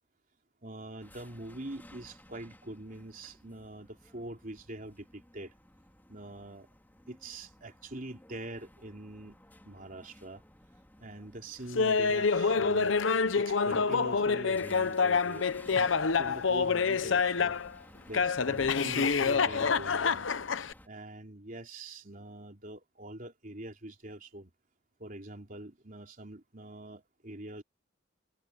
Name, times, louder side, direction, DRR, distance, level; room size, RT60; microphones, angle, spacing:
voice 1, 0.6-5.5 6.1-6.7 7.1-9.4 9.6-10.4 11.0-13.0 13.3-17.6 18.1-20.3 20.8-24.5 25.0-27.6, right 1 dB, 45° right, 3.8 m, -44 dB
sound 1, 1.0-20.9, left 1 dB, 10° left, 3.6 m, -56 dB
Laughter, 11.8-17.7 18.1-20.7, left 5 dB, 80° left, 0.8 m, -27 dB
head